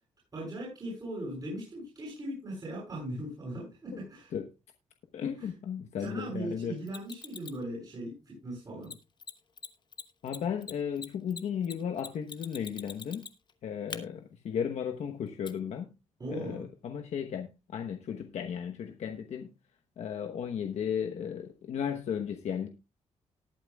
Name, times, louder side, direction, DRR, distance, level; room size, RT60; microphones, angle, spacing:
voice 1, 0.3-4.3 5.4-5.5 6.0-8.9 16.2-16.6, right 1 dB, 35° right, 7.2 m, -39 dB
voice 2, 5.1-6.8 10.2-13.2 13.6-15.9 16.3-19.5 20.0-22.7, left 8 dB, 70° left, 1.0 m, -35 dB
Mechanisms, 6.9-7.6 8.8-8.9 9.2-9.3 9.6-9.7 9.9-13.5 13.9-14.0 15.4-15.5, left 6 dB, 40° left, 1.1 m, -42 dB
19.0 x 8.8 x 2.3 m
cardioid pair, 110°, 12 cm